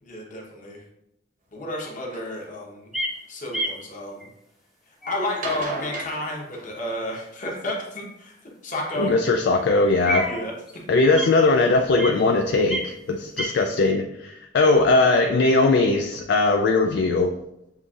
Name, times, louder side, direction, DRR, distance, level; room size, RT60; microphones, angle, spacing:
voice 1, 0.0-0.8 1.5-2.9 3.3-4.3 5.1-8.3 8.6-9.1 10.2-10.5 13.4-13.7, left 1 dB, 45° left, -2 dB, 1.0 m, -31 dB
sound 1, 2.1-2.3 3.0-3.7 5.2-7.2 8.8-9.4 10.1-10.2 10.7-10.8 11.2-11.3 11.4-11.5, right 1 dB, 50° right, 0.9 m, -36 dB
sound 2, 2.9-3.1 3.5-3.7 4.2-4.3 5.0-5.4 5.9-6.0 10.1-10.7 11.2-11.4 12.0-12.2 12.7-13.0 13.4-13.5, right 1 dB, ahead, 0.6 m, -29 dB
voice 2, 9.0-10.3 10.9-17.3, left 3 dB, 65° left, 3 dB, 0.3 m, -20 dB
7.0 x 2.6 x 2.4 m, 0.83 s
head